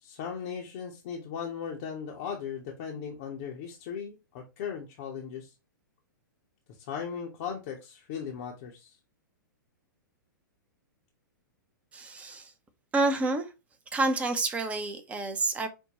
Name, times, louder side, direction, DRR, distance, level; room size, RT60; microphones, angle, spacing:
voice 1, 0.0-5.5 6.8-9.0, left 7 dB, 40° left, 0.7 m, -37 dB
voice 2, 11.9-12.5 12.9-13.5 13.9-15.7, right 2 dB, 10° right, 0.5 m, -28 dB
5.2 x 2.2 x 2.8 m
figure-of-eight pair, 105°, 11 cm